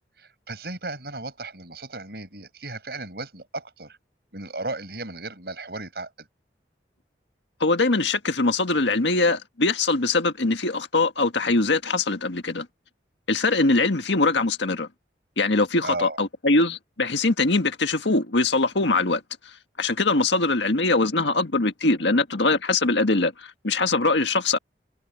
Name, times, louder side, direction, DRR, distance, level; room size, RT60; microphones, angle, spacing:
voice 1, 0.2-4.0 4.3-6.3 15.8-16.2, right 2 dB, 65° right, 5.6 m, -35 dB
voice 2, 7.6-12.7 13.3-14.9 15.4-19.2 19.8-24.6, left 3 dB, 90° left, 1.7 m, -22 dB
open air
head